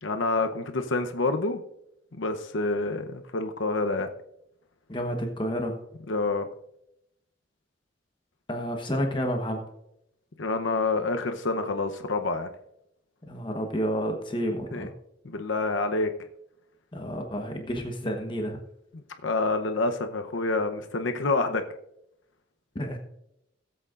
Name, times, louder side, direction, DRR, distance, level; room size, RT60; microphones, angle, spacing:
voice 1, 0.0-1.6 2.2-4.1 6.1-6.5 10.4-12.5 14.7-14.9 15.2-16.1 19.2-21.6, left 3 dB, 80° left, 7 dB, 0.8 m, -27 dB
voice 2, 4.9-5.8 8.5-9.6 13.3-14.9 16.9-18.6 22.7-23.0, equal, 25° left, 3 dB, 1.1 m, -30 dB
18.0 x 7.9 x 2.5 m, 0.80 s
head